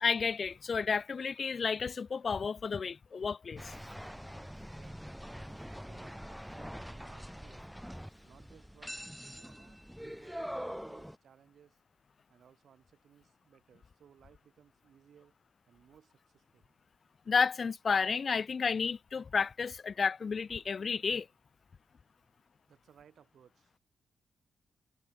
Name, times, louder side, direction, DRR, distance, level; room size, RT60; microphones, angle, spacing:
voice 1, 0.0-3.7 17.3-21.3, left 5 dB, 40° left, 0.5 m, -31 dB
sound 1, 3.6-11.2, equal, ahead, 1.6 m, -44 dB
voice 2, 4.6-7.7 8.2-11.8 12.3-15.3 15.7-16.8 22.7-23.8, right 8 dB, 65° right, 5.0 m, -62 dB
wide cardioid pair, 170°, 0 cm